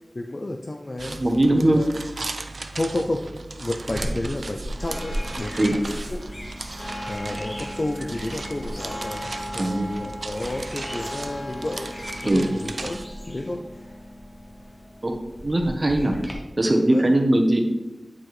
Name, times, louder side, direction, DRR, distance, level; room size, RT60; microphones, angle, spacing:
voice 1, 0.1-1.9 2.7-5.8 6.1-6.4 6.7-12.0 12.2-13.9 15.9-16.1 16.6-17.1, left 1 dB, 50° left, 3 dB, 0.4 m, -31 dB
sound 1, 1.0-13.0, right 3 dB, 80° right, 0.4 m, -37 dB
voice 2, 1.2-1.8 5.6-5.7 9.6-9.9 12.3-12.4 15.0-15.1 15.4-16.1 16.6-17.6, right 1 dB, 45° right, 3 dB, 0.9 m, -20 dB
sound 2, 3.9-16.3, equal, 30° left, 1.1 m, -35 dB
8.4 x 4.5 x 3.2 m, 1.0 s
wide cardioid pair, 55°, 0 cm